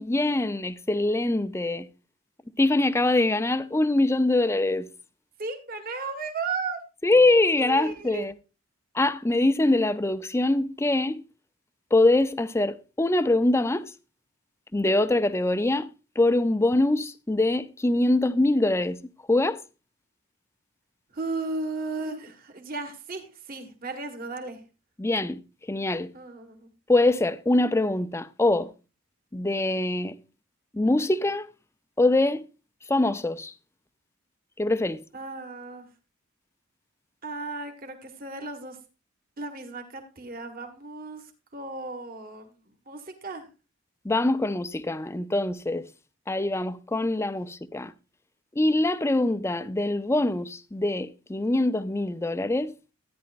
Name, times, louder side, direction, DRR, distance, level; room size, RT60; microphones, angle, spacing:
voice 1, 0.0-1.9 2.6-4.9 7.0-8.3 8.9-11.2 11.9-13.9 14.7-15.9 16.2-19.0 19.3-19.6 25.0-25.4 25.7-26.1 26.9-28.7 29.3-30.1 30.7-31.5 32.0-32.4 32.9-33.5 34.6-35.0 44.0-45.9 46.3-47.9 48.6-52.7, left 2 dB, 15° left, 0.5 m, -23 dB
voice 2, 5.4-6.8 7.6-8.3 21.1-24.6 26.1-26.7 35.1-35.9 37.2-38.8 39.4-42.5 42.8-43.5, right 3 dB, 45° right, 1.6 m, -35 dB
13.5 x 9.8 x 2.5 m
head